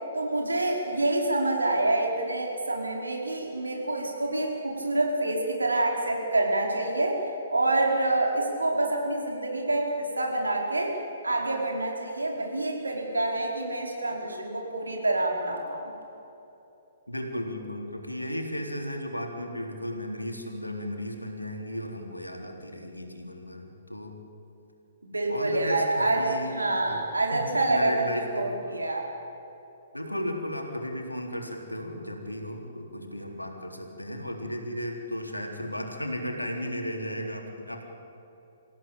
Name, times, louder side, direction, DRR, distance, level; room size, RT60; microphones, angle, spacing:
voice 1, 0.1-7.2 7.5-10.9 11.2-15.9 25.1-26.2 26.5-29.1, right 2 dB, 80° right, 0 dB, 4.9 m, -27 dB
voice 2, 17.1-24.2 25.3-27.0 27.3-28.7 29.9-37.8, equal, 90° left, 2 dB, 3.9 m, -35 dB
27.0 x 16.0 x 9.0 m, 2.9 s
figure-of-eight pair, 120°, 0 cm